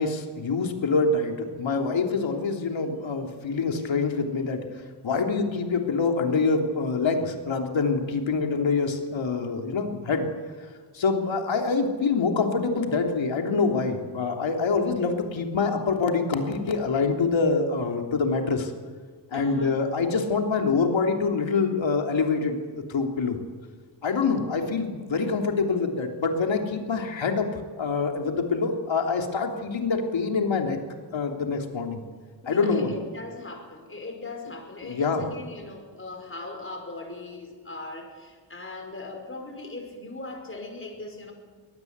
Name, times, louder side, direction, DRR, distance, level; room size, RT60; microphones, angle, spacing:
voice 1, 0.0-4.6 5.0-10.3 10.9-18.7 19.3-23.4 24.0-27.5 27.8-30.8 31.1-32.0 32.5-33.0 34.8-35.3, left 4 dB, 80° left, 3 dB, 3.3 m, -25 dB
voice 2, 19.3-19.8 24.1-24.2 32.4-41.3, left 2 dB, 25° left, 3 dB, 5.3 m, -39 dB
23.5 x 18.5 x 8.2 m, 1.5 s
wide cardioid pair, 125°, 45 cm